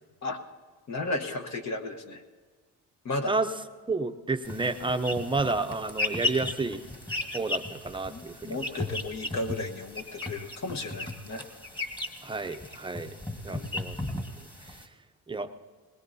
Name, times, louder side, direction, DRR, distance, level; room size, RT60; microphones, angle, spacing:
voice 1, 0.9-2.2 3.0-3.3 8.1-11.4 13.5-13.7, left 2 dB, 45° left, 3 dB, 1.3 m, -34 dB
voice 2, 3.9-6.8 7.3-8.6 12.2-13.1 13.4-14.0 14.7-14.8 15.3-15.5, right 3 dB, 15° right, 8 dB, 0.7 m, -30 dB
sound 1, 4.5-14.9, left 2 dB, 10° left, 1.6 m, -36 dB
21.0 x 19.5 x 2.8 m, 1.5 s
cardioid pair, 90°, 37 cm